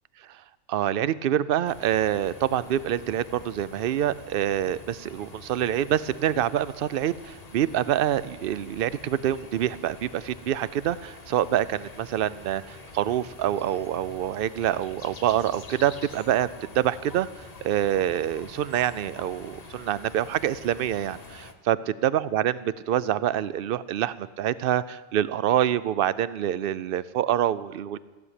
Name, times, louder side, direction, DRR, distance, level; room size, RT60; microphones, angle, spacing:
voice 1, 0.7-21.8 22.0-28.0, right 11 dB, 60° right, 17 dB, 0.6 m, -26 dB
sound 1, 1.7-21.5, left 3 dB, 30° left, 1.1 m, -46 dB
15.5 x 7.2 x 9.8 m, 1.3 s
omnidirectional pair, 1.3 m